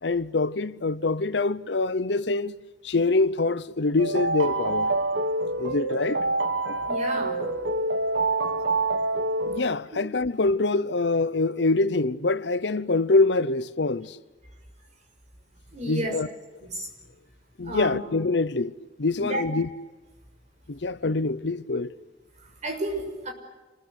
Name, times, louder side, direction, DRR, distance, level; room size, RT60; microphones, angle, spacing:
voice 1, 0.0-2.5 2.8-4.9 5.6-6.2 9.5-14.2 15.9-16.3 17.6-18.7 19.0-19.7 20.7-21.9, left 3 dB, 70° left, 0.8 m, -25 dB
sound 1, 4.0-9.6, right 2 dB, 75° right, 1.4 m, -26 dB
voice 2, 6.9-7.4 15.7-16.2 16.6-16.9 17.6-18.0 19.2-19.4 22.6-23.3, right 1 dB, 40° right, 6.2 m, -31 dB
28.5 x 21.0 x 8.4 m
head